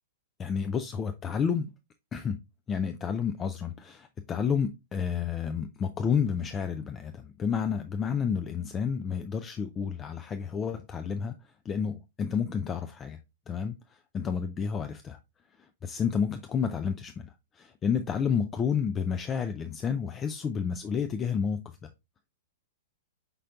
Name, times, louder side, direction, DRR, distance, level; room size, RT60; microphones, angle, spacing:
voice 1, 0.4-1.7 2.1-2.4 2.7-11.3 11.7-13.2 13.5-13.7 14.1-15.2 15.8-17.3 17.6-21.6, left 6 dB, 20° left, 0.3 m, -30 dB
5.2 x 4.2 x 2.4 m
figure-of-eight pair, 105°, 0 cm